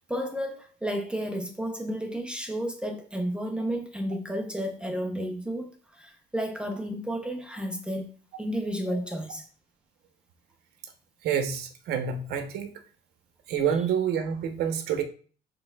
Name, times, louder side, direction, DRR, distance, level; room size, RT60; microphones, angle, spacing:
voice 1, 0.0-8.1 8.4-9.5, equal, 5° right, 0.7 m, -32 dB
voice 2, 11.2-12.7 13.5-15.0, right 8 dB, 75° right, 0.9 m, -27 dB
6.6 x 3.4 x 2.3 m
cardioid pair, 110°, 17 cm